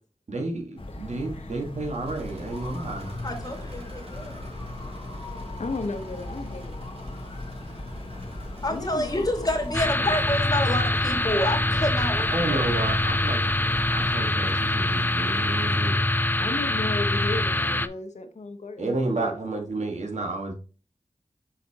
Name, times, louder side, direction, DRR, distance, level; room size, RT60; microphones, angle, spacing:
voice 1, 0.3-3.1 12.3-16.0 18.8-20.5, right 2 dB, 80° right, 1.6 m, -31 dB
sound 1, 0.8-14.2, left 2 dB, 50° left, 1.4 m, -38 dB
voice 2, 0.9-1.7 5.6-6.7 8.7-9.5 9.8-10.2 16.4-19.3, left 3 dB, 80° left, 1.0 m, -35 dB
Engine / Mechanisms, 1.8-16.1, right 1 dB, 55° right, 2.7 m, -47 dB
voice 3, 3.2-4.4 8.6-12.7, left 1 dB, 30° left, 2.1 m, -28 dB
sound 2, 9.7-17.9, left 1 dB, 15° left, 0.4 m, -24 dB
5.8 x 5.8 x 2.9 m
wide cardioid pair, 55°, 12 cm